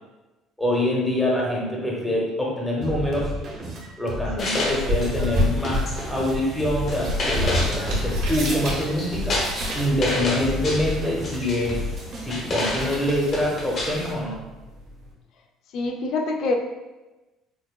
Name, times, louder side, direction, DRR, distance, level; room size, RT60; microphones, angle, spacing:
voice 1, 0.6-3.3 4.0-11.8 12.2-14.4, left 1 dB, 5° left, -3 dB, 0.7 m, -25 dB
sound 1, 2.8-12.9, equal, 50° right, 0.9 m, -33 dB
sound 2, 4.1-15.1, left 1 dB, 75° right, 1.3 m, -30 dB
sound 3, 4.4-14.1, left 2 dB, 50° left, 1.0 m, -31 dB
voice 2, 15.7-16.5, left 3 dB, 65° left, 4 dB, 0.5 m, -25 dB
5.6 x 2.1 x 2.3 m, 1.1 s
cardioid pair, 115°, 0 cm